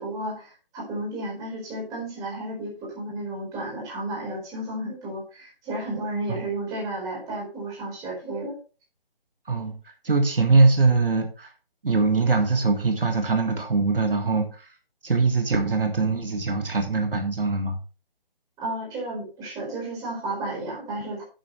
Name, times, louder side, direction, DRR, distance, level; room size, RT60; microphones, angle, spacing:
voice 1, 0.0-8.5 18.6-21.2, right 1 dB, 10° right, -3 dB, 4.4 m, -32 dB
voice 2, 9.5-11.5 11.8-14.7 15.0-17.8, right 3 dB, 65° right, 4 dB, 2.1 m, -22 dB
10.5 x 9.0 x 3.2 m, 0.35 s
figure-of-eight pair, 150°, 29 cm